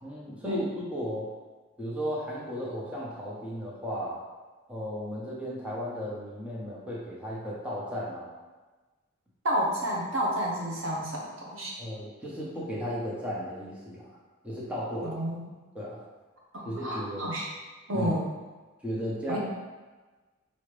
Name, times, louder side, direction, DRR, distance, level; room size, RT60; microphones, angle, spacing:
voice 1, 0.0-1.3 1.8-4.2 4.7-8.3 11.8-14.1 14.4-15.1 15.7-16.0 16.6-17.3 17.9-18.1 18.8-19.4, equal, 5° right, -7 dB, 0.8 m, -35 dB
voice 2, 9.4-11.7 15.0-15.5 16.5-17.5 17.9-18.3 19.3-19.4, equal, 80° right, -3 dB, 1.0 m, -30 dB
4.8 x 2.8 x 3.2 m, 1.3 s
head